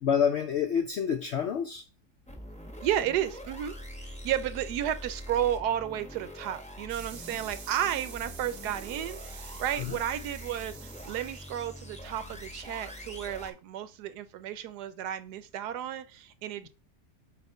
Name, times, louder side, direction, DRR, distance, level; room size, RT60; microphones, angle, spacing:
voice 1, 0.0-1.8 9.8-10.0, left 7 dB, 70° left, 0.6 m, -28 dB
sound 1, 2.3-13.5, equal, 5° left, 0.8 m, -44 dB
voice 2, 2.8-3.7 4.2-16.7, right 11 dB, 85° right, 1.2 m, -32 dB
sound 2, 6.9-12.0, right 6 dB, 50° right, 0.7 m, -48 dB
4.3 x 4.2 x 5.4 m
omnidirectional pair, 1.7 m